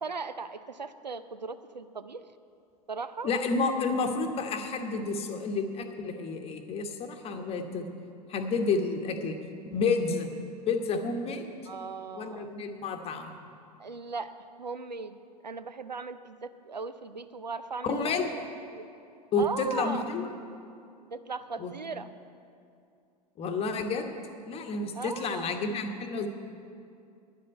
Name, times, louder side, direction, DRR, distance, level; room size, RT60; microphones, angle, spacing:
voice 1, 0.0-2.2 2.9-3.3 11.7-12.5 13.8-14.3 14.6-15.2 15.4-18.2 18.7-18.9 19.4-20.1 21.1-22.1 24.9-25.6, right 4 dB, 85° right, 12 dB, 0.5 m, -38 dB
voice 2, 3.2-7.9 8.3-9.4 9.7-10.3 10.6-11.5 12.2-13.3 17.8-18.4 19.3-20.3 21.6-21.7 23.4-24.1 24.5-26.3, left 4 dB, 30° left, 5 dB, 1.1 m, -30 dB
10.0 x 7.6 x 9.1 m, 2.5 s
figure-of-eight pair, 90°, 21 cm